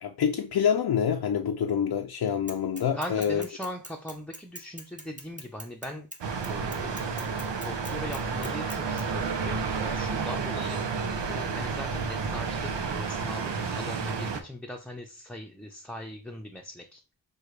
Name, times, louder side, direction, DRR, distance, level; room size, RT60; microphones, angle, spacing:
voice 1, 0.0-3.4, left 8 dB, 65° left, 0.5 m, -26 dB
Bicycle / Mechanisms, 2.5-9.0, right 1 dB, 20° right, 1.1 m, -43 dB
voice 2, 2.9-6.1 6.5-7.3 7.6-17.0, left 1 dB, 5° left, 0.7 m, -40 dB
sound 1, 6.2-14.4, right 5 dB, 90° right, 0.7 m, -31 dB
6.4 x 2.4 x 3.2 m
cardioid pair, 40°, 41 cm